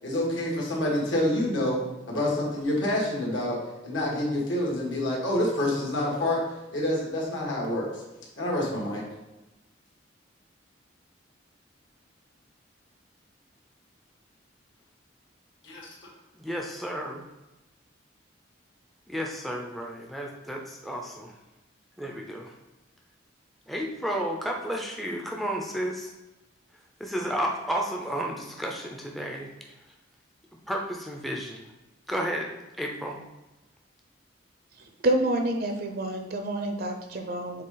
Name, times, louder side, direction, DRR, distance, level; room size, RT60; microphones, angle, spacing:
voice 1, 0.0-6.4 6.7-8.0 8.4-9.0 15.6-15.9, left 1 dB, 75° left, -3 dB, 1.9 m, -27 dB
voice 2, 16.4-17.2 19.1-21.3 22.0-22.5 23.7-26.1 27.0-29.5 30.7-31.6 32.1-32.5 32.8-33.2, equal, ahead, 0 dB, 0.5 m, -32 dB
voice 3, 34.8-37.6, right 1 dB, 50° right, 4 dB, 0.6 m, -28 dB
6.6 x 3.8 x 3.8 m, 1.0 s
head